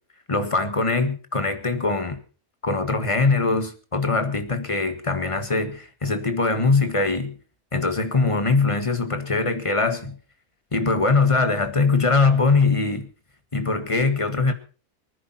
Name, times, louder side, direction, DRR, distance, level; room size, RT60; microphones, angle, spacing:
voice 1, 0.3-2.2 2.6-7.4 7.7-10.2 10.7-13.1 13.5-14.5, left 3 dB, 20° left, 1.7 m, -22 dB
24.5 x 10.0 x 4.5 m
omnidirectional pair, 1.5 m